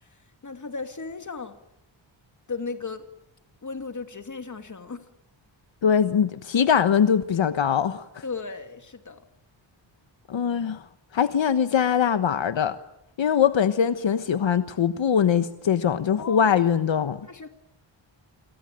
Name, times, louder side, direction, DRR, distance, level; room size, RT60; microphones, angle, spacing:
voice 1, 0.4-1.6 2.5-3.0 3.6-5.1 8.2-9.2 16.2-16.6 17.3-17.5, left 4 dB, 40° left, 7 dB, 2.6 m, -35 dB
voice 2, 5.8-8.2 10.3-10.8 11.1-12.8 13.2-17.2, left 8 dB, 75° left, 11 dB, 1.2 m, -22 dB
29.0 x 22.5 x 9.1 m, 0.81 s
wide cardioid pair, 130°, 46 cm